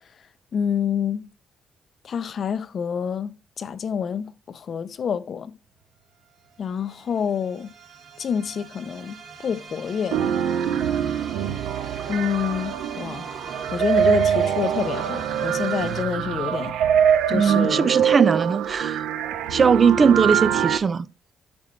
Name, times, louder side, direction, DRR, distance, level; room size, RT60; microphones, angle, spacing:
voice 1, 0.5-1.3 2.0-5.5 6.6-7.7 8.2-10.3 12.1-13.2 13.7-16.7 17.3-17.9, left 7 dB, 55° left, 0.7 m, -27 dB
sound 1, 5.8-5.9 6.1-16.0, right 5 dB, 65° right, 2.6 m, -41 dB
sound 2, 10.1-20.8, right 8 dB, 90° right, 0.8 m, -24 dB
voice 2, 17.3-19.0 19.5-21.1, right 6 dB, 40° right, 0.6 m, -19 dB
8.6 x 7.2 x 3.2 m
cardioid pair, 90°, 0 cm